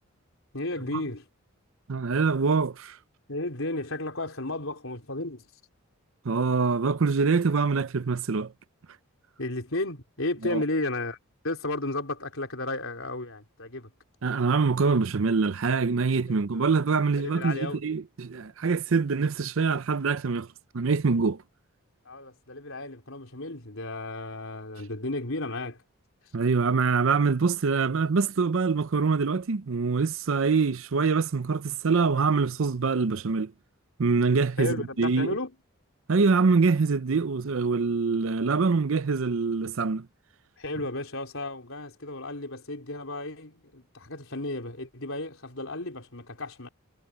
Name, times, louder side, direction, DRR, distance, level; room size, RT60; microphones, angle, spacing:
voice 1, 0.5-1.3 3.3-5.5 9.4-11.2 11.4-13.9 16.3-16.7 17.2-17.8 22.0-25.8 34.6-35.5 40.6-46.7, left 2 dB, 65° left, 4.2 m, -33 dB
voice 2, 1.9-3.0 6.2-8.5 10.5-10.6 14.2-20.5 20.7-21.4 26.3-33.5 34.0-35.3 36.1-40.1, right 4 dB, 65° right, 0.6 m, -24 dB
head